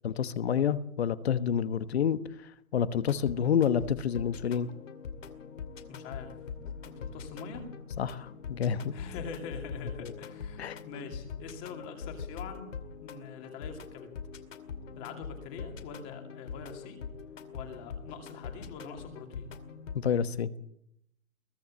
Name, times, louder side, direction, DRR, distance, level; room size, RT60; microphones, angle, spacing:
voice 1, 0.0-4.7 8.0-9.0 10.0-10.1 10.6-10.8 19.9-20.5, left 8 dB, 50° left, 13 dB, 1.2 m, -29 dB
sound 1, 3.0-20.0, left 6 dB, 65° left, 2.5 m, -43 dB
voice 2, 5.9-6.4 6.8-7.7 8.9-12.8 13.0-14.1 15.0-17.0 17.5-19.5, left 5 dB, 20° left, 4 dB, 2.5 m, -44 dB
22.0 x 14.0 x 8.5 m, 0.74 s
hypercardioid pair, 175°, 41 cm